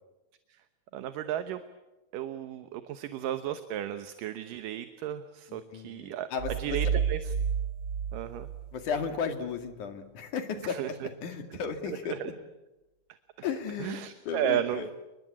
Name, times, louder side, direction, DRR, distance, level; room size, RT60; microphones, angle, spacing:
voice 1, 0.9-1.6 2.1-7.3 8.1-8.5 10.6-10.9 11.9-12.3 13.1-13.2 13.8-14.9, right 11 dB, 70° right, 10 dB, 2.5 m, -34 dB
voice 2, 5.5-7.0 8.7-12.3 13.4-14.0 14.3-14.9, left 6 dB, 55° left, 6 dB, 3.6 m, -35 dB
sound 1, 6.4-9.2, right 7 dB, 30° right, 3.4 m, -31 dB
29.5 x 22.0 x 8.6 m, 1.0 s
omnidirectional pair, 4.4 m